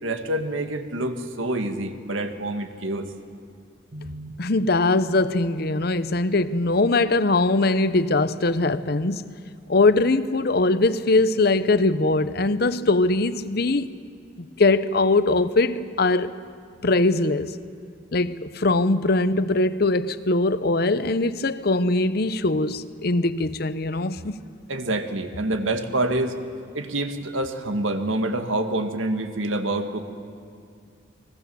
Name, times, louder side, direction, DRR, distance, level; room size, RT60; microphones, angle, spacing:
voice 1, 0.0-3.1 3.9-4.3 24.7-26.4 26.7-30.0, right 1 dB, 90° right, 1.8 m, -27 dB
voice 2, 4.4-9.3 9.7-13.9 14.6-16.3 16.8-17.6 18.1-24.4, left 2 dB, 55° left, 0.8 m, -21 dB
30.0 x 21.0 x 7.0 m
head